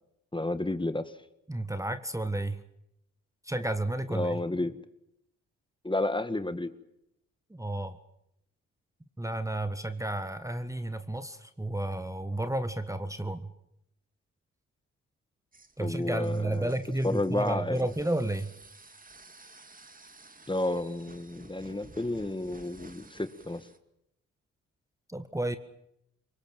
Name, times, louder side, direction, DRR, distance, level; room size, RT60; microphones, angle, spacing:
voice 1, 0.3-1.1 4.1-4.7 5.8-6.7 15.8-16.7 17.0-17.8 20.5-23.6, left 2 dB, 15° left, 12 dB, 1.8 m, -31 dB
voice 2, 1.5-2.6 3.4-4.4 7.5-8.0 9.2-13.5 15.8-18.5 25.1-25.6, right 1 dB, 10° right, 11 dB, 1.5 m, -32 dB
sound 1, 15.5-23.8, right 3 dB, 25° right, 2.4 m, -54 dB
23.5 x 20.5 x 9.0 m, 0.79 s
supercardioid pair, 50°, 33 cm